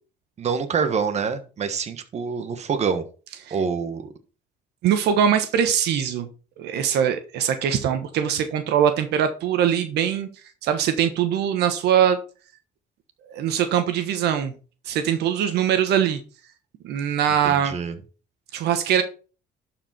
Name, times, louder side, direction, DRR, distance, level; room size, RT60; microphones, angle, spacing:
voice 1, 0.4-3.0 3.5-4.1 17.4-18.0, right 6 dB, 40° right, 8 dB, 1.4 m, -26 dB
voice 2, 4.8-6.3 6.6-10.3 10.6-12.2 13.3-14.5 14.9-16.2 16.8-17.7 18.5-19.0, right 9 dB, 80° right, 9 dB, 1.2 m, -22 dB
11.5 x 5.0 x 4.3 m, 0.35 s
cardioid pair, 110°, 17 cm